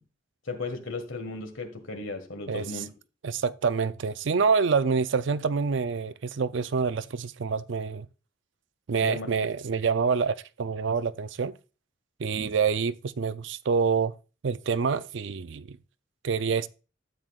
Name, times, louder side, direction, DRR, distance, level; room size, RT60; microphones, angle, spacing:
voice 1, 0.5-2.9 9.0-9.3, left 3 dB, 75° left, 1.7 m, -35 dB
voice 2, 2.5-2.8 3.2-8.1 8.9-11.5 12.2-14.1 14.4-15.8 16.2-16.7, right 5 dB, 65° right, 0.4 m, -27 dB
12.5 x 7.9 x 2.4 m
head